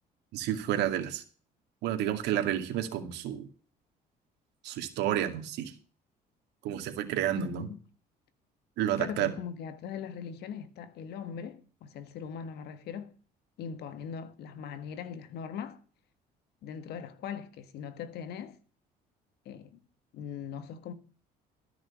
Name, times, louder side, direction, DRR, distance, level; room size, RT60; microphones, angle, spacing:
voice 1, 0.3-1.2 1.8-3.5 4.6-5.7 6.6-7.7 8.8-9.3, right 11 dB, 85° right, 2.3 m, -30 dB
voice 2, 7.3-7.8 9.0-13.1 13.6-15.8 16.6-18.6 19.4-19.8 20.1-20.9, left 7 dB, 75° left, 1.6 m, -40 dB
13.5 x 6.1 x 7.3 m
cardioid pair, 110°, 17 cm